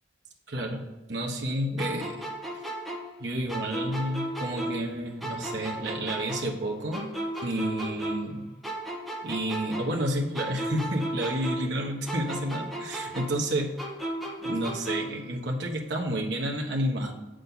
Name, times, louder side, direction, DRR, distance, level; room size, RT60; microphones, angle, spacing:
voice 1, 0.5-0.8 1.1-2.1 3.2-7.1 7.4-8.4 9.2-13.7 14.4-17.1, right 1 dB, 70° right, -1 dB, 1.2 m, -30 dB
sound 1, 1.8-4.9 5.2-8.4 8.6-11.8 12.1-15.2, right 1 dB, ahead, 1.7 m, -35 dB
8.2 x 6.4 x 4.0 m, 1.1 s
head